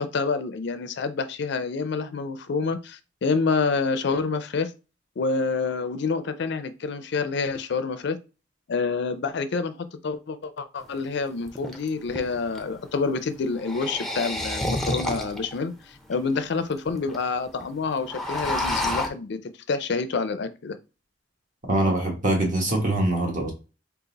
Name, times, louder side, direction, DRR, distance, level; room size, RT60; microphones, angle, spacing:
voice 1, 0.0-4.7 5.2-8.2 8.7-19.4 19.7-20.8, left 4 dB, 60° left, 0.4 m, -27 dB
sound 1, 10.8-10.9 11.5-12.7 13.5-15.6 16.1-16.2 16.4-16.5 16.7-17.2 17.5-17.6 17.9-19.1, left 1 dB, ahead, 0.5 m, -29 dB
voice 2, 21.7-23.5, right 1 dB, 40° right, 1.2 m, -23 dB
3.9 x 2.4 x 3.9 m
head